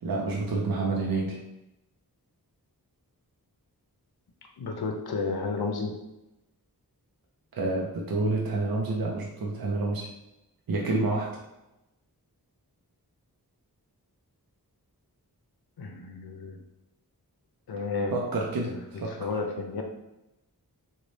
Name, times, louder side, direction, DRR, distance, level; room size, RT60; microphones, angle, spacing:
voice 1, 0.0-1.4 7.5-10.1 10.7-11.4 18.1-19.3, right 3 dB, 65° right, -1 dB, 0.6 m, -29 dB
voice 2, 4.6-6.0 15.8-16.6 17.7-18.2 18.7-18.8 19.1-19.8, left 4 dB, 75° left, 3 dB, 0.6 m, -32 dB
3.2 x 2.2 x 3.9 m, 0.93 s
wide cardioid pair, 65°, 38 cm